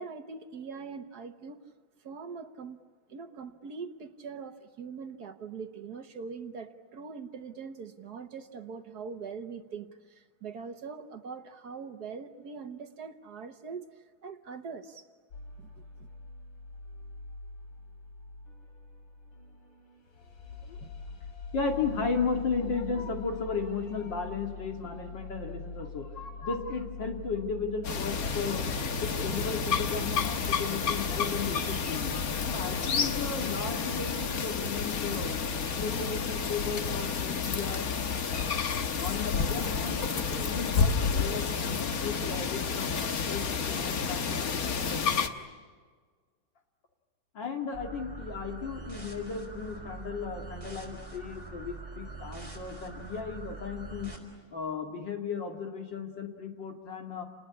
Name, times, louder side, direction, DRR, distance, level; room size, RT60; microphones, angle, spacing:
voice 1, 0.0-1.6 2.0-2.8 3.1-15.1 15.6-15.8, right 5 dB, 60° right, 1.5 m, -42 dB
sound 1, 15.3-33.1, left 4 dB, 90° left, 4.2 m, -44 dB
voice 2, 21.5-28.6 29.0-32.2 32.5-35.3 35.7-37.9 38.8-40.0 40.4-45.0 47.3-54.1 54.5-57.2, left 5 dB, 70° left, 3.0 m, -35 dB
sound 2, 27.8-45.3, left 5 dB, 50° left, 1.6 m, -30 dB
sound 3, 47.7-54.2, right 4 dB, 10° right, 4.9 m, -43 dB
29.5 x 20.5 x 9.7 m
omnidirectional pair, 2.1 m